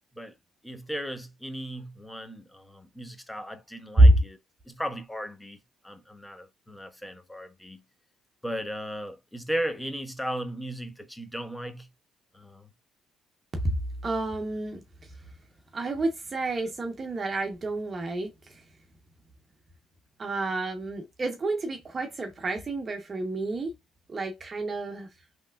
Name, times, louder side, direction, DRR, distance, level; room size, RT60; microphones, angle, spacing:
voice 1, 0.6-4.4 4.7-5.6 5.8-7.8 8.4-11.9 12.3-12.7, equal, 5° left, 0.7 m, -36 dB
voice 2, 14.0-15.1 15.7-18.7 20.2-23.7 24.1-25.1, right 1 dB, 35° right, 0.7 m, -26 dB
3.2 x 2.9 x 2.2 m
supercardioid pair, 80°, 0 cm